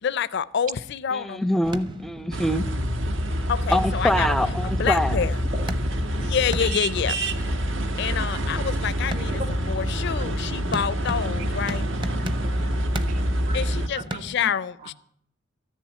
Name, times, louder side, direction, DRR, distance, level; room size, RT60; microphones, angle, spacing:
voice 1, 0.0-1.4 3.5-5.4 6.1-7.2 8.0-11.9 13.5-14.9, left 7 dB, 60° left, 0.4 m, -28 dB
voice 2, 1.2-2.6 3.7-5.2, left 1 dB, ahead, 0.5 m, -24 dB
sound 1, 1.6-4.7 5.1-5.2 5.7-14.4, equal, 25° right, 0.8 m, -38 dB
sound 2, 2.3-13.9, equal, 75° right, 1.2 m, -26 dB
voice 3, 8.1-8.7 9.2-9.5 10.2-10.3 10.6-10.7 11.3-11.5 12.2-13.6 13.9-14.5, right 1 dB, 40° right, 1.7 m, -40 dB
14.0 x 7.2 x 9.8 m
head